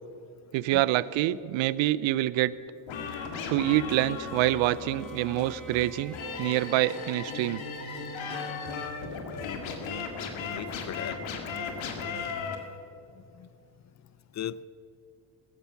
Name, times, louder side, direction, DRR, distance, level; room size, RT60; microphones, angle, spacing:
voice 1, 0.5-2.5 3.5-7.6, right 15 dB, 75° right, 18 dB, 0.6 m, -26 dB
sound 1, 2.9-12.6, left 5 dB, 75° left, 2.0 m, -36 dB
Bowed string instrument, 4.5-8.9, right 3 dB, ahead, 2.6 m, -47 dB
voice 2, 10.5-11.2 11.9-12.5 13.4-13.5 14.3-14.6, left 11 dB, 40° left, 19 dB, 0.4 m, -38 dB
15.0 x 13.0 x 5.8 m, 2.5 s
cardioid pair, 85°, 47 cm